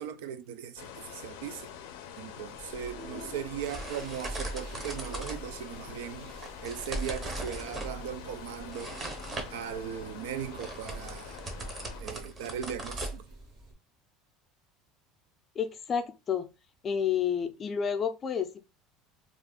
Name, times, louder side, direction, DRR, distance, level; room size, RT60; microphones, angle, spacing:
voice 1, 0.0-1.7 2.2-9.0 9.5-11.4 12.0-13.3, right 9 dB, 90° right, 0.3 m, -38 dB
sound 1, 0.8-12.0, left 9 dB, 90° left, 0.4 m, -46 dB
sound 2, 2.6-13.7, right 2 dB, 20° right, 0.7 m, -40 dB
sound 3, 2.7-13.7, right 1 dB, 65° right, 1.1 m, -54 dB
voice 2, 15.6-16.5 16.8-18.6, left 7 dB, 30° left, 0.4 m, -30 dB
2.4 x 2.2 x 3.5 m
cardioid pair, 140°, 0 cm